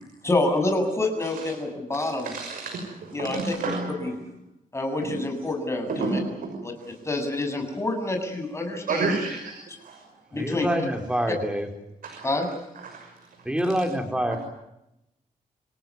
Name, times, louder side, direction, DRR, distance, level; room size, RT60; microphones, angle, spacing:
voice 1, 0.2-2.3 3.1-3.5 4.0-4.1 4.7-6.2 6.6-6.7 7.0-9.2 10.3-10.7 12.2-12.5, left 2 dB, 20° left, 4 dB, 7.5 m, -27 dB
voice 2, 1.9-4.1 5.0-5.2 5.9-6.9 8.9-9.5 9.8-10.0 12.0-12.3 12.8-13.1 14.3-14.4, right 4 dB, 85° right, 3 dB, 6.1 m, -31 dB
voice 3, 10.3-11.7 13.4-14.4, equal, 5° right, 5 dB, 4.7 m, -26 dB
27.5 x 17.5 x 9.8 m, 0.86 s
wide cardioid pair, 120°, 14 cm